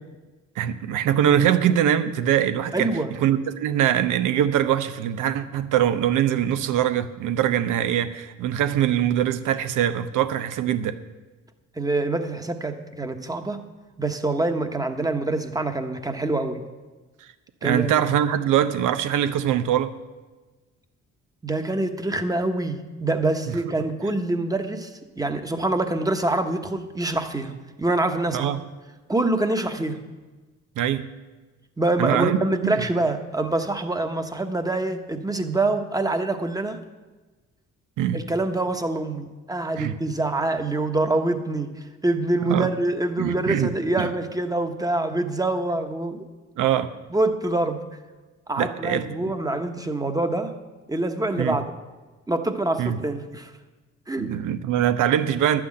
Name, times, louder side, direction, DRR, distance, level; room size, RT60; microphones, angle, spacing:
voice 1, 0.6-2.9 3.2-11.0 17.6-19.9 28.3-28.6 30.8-31.1 32.0-32.8 38.0-38.2 39.7-39.9 42.5-42.7 43.2-43.7 44.0-44.1 46.6-46.9 48.6-49.1 51.4-51.6 52.8-53.0 54.2-55.6, right 10 dB, 85° right, 11 dB, 0.8 m, -22 dB
voice 2, 2.7-3.1 11.7-13.6 14.0-16.7 17.6-18.0 21.4-24.9 25.2-28.5 29.1-30.0 31.8-36.8 38.1-41.7 42.0-46.3 47.1-47.8 48.5-50.5 50.9-51.7 52.3-53.5 54.1-54.3, right 2 dB, 10° right, 7 dB, 1.1 m, -25 dB
11.5 x 6.2 x 8.7 m, 1.3 s
cardioid pair, 90°, 30 cm